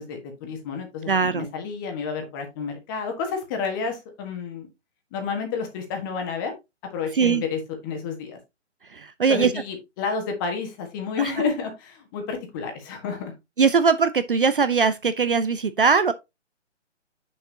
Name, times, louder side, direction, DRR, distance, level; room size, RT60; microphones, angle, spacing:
voice 1, 0.0-4.7 5.1-6.5 6.9-8.4 9.3-13.3, left 5 dB, 15° left, 1.5 m, -30 dB
voice 2, 1.1-1.5 7.1-7.4 8.9-9.5 11.2-11.3 13.6-16.1, right 5 dB, 45° right, 0.6 m, -20 dB
7.4 x 6.5 x 2.8 m
figure-of-eight pair, 145°, 36 cm